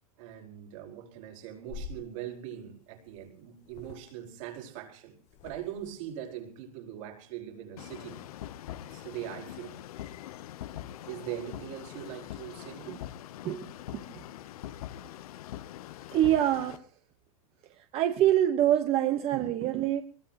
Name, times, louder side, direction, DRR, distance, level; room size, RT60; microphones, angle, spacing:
voice 1, 0.2-8.2 8.8-9.8 11.0-12.9, right 11 dB, 60° right, 5.0 m, -41 dB
sound 1, 1.7-2.1 3.1-3.3 3.6-4.1 5.2-5.9, left 5 dB, 40° left, 1.1 m, -45 dB
sound 2, 7.8-16.8, left 12 dB, 75° left, 1.0 m, -43 dB
voice 2, 13.4-14.0 16.1-16.9 17.8-20.0, right 12 dB, 30° right, 1.2 m, -26 dB
22.0 x 21.5 x 3.0 m
supercardioid pair, 155°, 19 cm